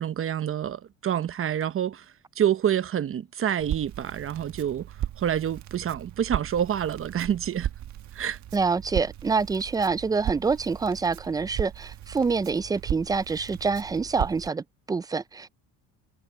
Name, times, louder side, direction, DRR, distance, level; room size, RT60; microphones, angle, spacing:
voice 1, 0.0-2.0 2.4-4.9 5.2-7.7 8.1-8.4, right 9 dB, 40° right, 0.9 m, -27 dB
Crackle, 3.6-14.5, right 11 dB, 55° right, 1.3 m, -36 dB
voice 2, 8.5-15.5, right 4 dB, 10° right, 0.3 m, -26 dB
cardioid pair, 115°, 34 cm